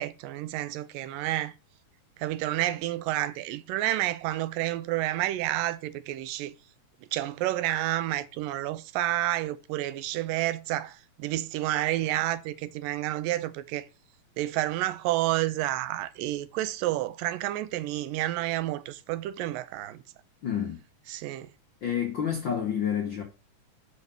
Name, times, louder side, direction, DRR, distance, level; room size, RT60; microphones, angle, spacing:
voice 1, 0.0-1.5 2.2-6.5 7.1-13.9 14.4-20.0 21.1-21.5, right 14 dB, 85° right, 2.3 m, -30 dB
voice 2, 20.4-20.8 21.8-23.2, left 8 dB, 70° left, 1.0 m, -29 dB
6.2 x 5.4 x 6.7 m
omnidirectional pair, 3.8 m